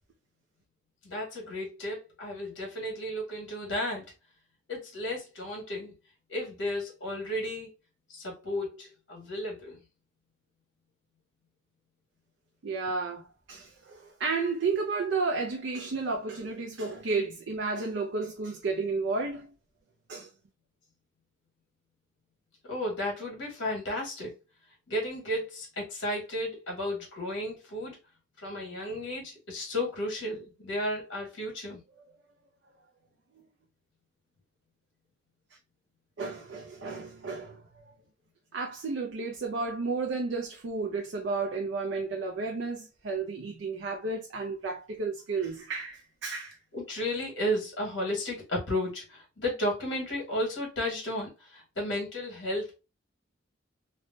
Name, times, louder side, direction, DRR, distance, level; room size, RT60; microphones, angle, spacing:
voice 1, 1.0-4.0 4.7-5.9 6.3-7.7 8.1-9.8 22.6-24.3 24.9-28.0 28.4-31.8 46.7-52.7, left 1 dB, 75° left, 1.5 m, -33 dB
voice 2, 12.6-19.5 20.1-20.3 36.2-37.6 38.5-46.6, right 4 dB, 70° right, 0.4 m, -32 dB
3.1 x 2.1 x 2.6 m
head